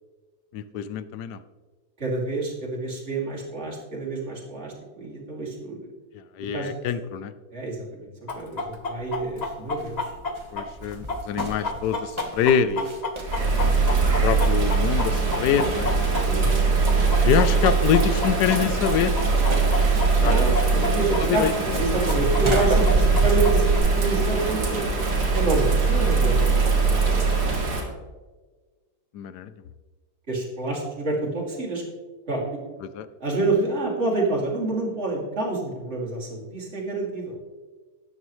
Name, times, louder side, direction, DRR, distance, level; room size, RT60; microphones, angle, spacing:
voice 1, 0.5-1.4 6.1-7.3 10.5-12.9 14.2-15.9 17.2-19.2 20.2-21.5 27.5-27.6 29.1-29.5 32.9-33.1, left 8 dB, 80° left, 13 dB, 1.2 m, -25 dB
voice 2, 2.0-5.9 6.5-6.7 7.5-10.1 13.4-13.8 16.2-17.2 20.1-21.4 21.8-24.8 25.3-27.3 30.3-31.8 32.3-32.8 33.2-37.4, right 2 dB, 40° right, -4 dB, 2.9 m, -28 dB
Chicken rooster, 8.3-16.6 16.9-21.2 21.5-21.6 22.1-23.8, left 3 dB, 35° left, 0.7 m, -30 dB
sound 1, 9.8-26.5, equal, 20° right, 1.2 m, -33 dB
Bird vocalization bird call bird song / Rain, 13.2-27.8, right 4 dB, 75° right, 2.6 m, -22 dB
13.0 x 9.7 x 3.1 m, 1.3 s
omnidirectional pair, 1.8 m